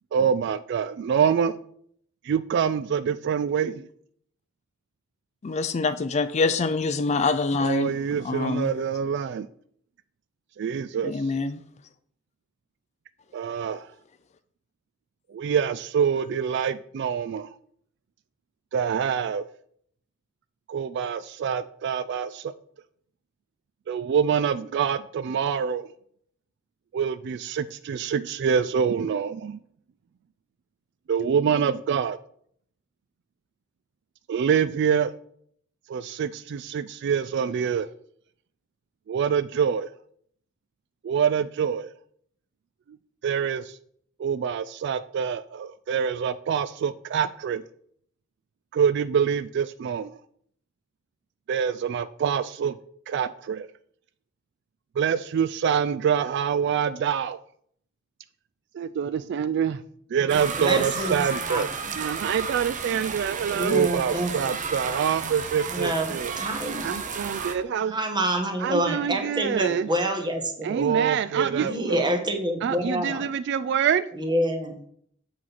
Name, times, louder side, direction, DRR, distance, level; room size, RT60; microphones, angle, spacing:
voice 1, 0.1-1.6 2.2-3.9 7.6-9.5 10.6-11.2 13.3-13.9 15.3-17.5 18.7-19.5 20.7-22.5 23.9-25.9 26.9-29.6 31.1-32.2 34.3-35.1 35.9-37.9 39.1-39.9 41.0-41.9 43.2-43.8 44.2-47.6 48.7-50.2 51.5-52.8 53.1-53.7 55.0-57.4 58.7-59.8 60.1-66.3 66.8-68.0 68.6-69.9 70.6-72.0 72.6-74.0, right 7 dB, 60° right, 0.3 m, -25 dB
voice 2, 5.4-7.9 8.2-8.7 11.0-11.6, left 3 dB, 35° left, 0.4 m, -25 dB
sound 1, 60.3-67.5, right 5 dB, 40° right, 0.7 m, -33 dB
voice 3, 60.6-61.2 61.5-61.9 63.5-64.6 65.7-67.0 67.9-70.8 71.6-73.3 74.1-74.8, right 1 dB, 20° right, 1.2 m, -27 dB
7.4 x 4.1 x 5.8 m
head